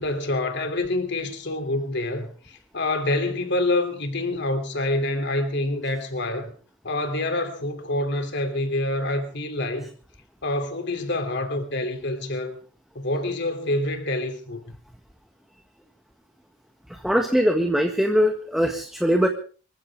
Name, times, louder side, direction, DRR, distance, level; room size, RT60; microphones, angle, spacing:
voice 1, 0.0-6.5 6.8-9.9 10.4-12.6 12.9-14.8, left 2 dB, 60° left, 3.1 m, -27 dB
voice 2, 16.9-19.3, equal, ahead, 1.6 m, -21 dB
26.0 x 15.0 x 3.6 m
head